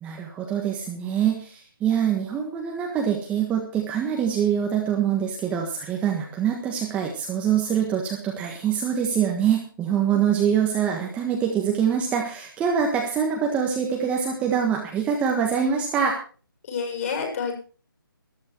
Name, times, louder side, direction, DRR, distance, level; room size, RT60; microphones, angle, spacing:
voice 1, 0.0-16.1, right 8 dB, 10° right, 0 dB, 1.6 m, -24 dB
voice 2, 9.9-10.3 16.7-17.6, left 5 dB, 40° left, 2 dB, 7.2 m, -30 dB
14.0 x 12.5 x 4.6 m, 0.38 s
figure-of-eight pair, 150°, 12 cm